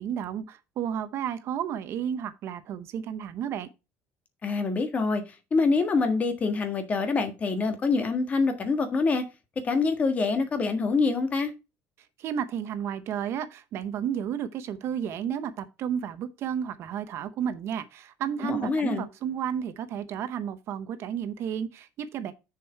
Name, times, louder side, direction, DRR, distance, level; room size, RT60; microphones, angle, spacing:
voice 1, 0.0-3.7 12.2-22.3, right 9 dB, 50° right, 0.8 m, -32 dB
voice 2, 4.4-9.2 9.6-11.5 18.4-19.1, left 4 dB, 25° left, 1.6 m, -25 dB
6.9 x 6.2 x 4.6 m
cardioid pair, 160°, 6 cm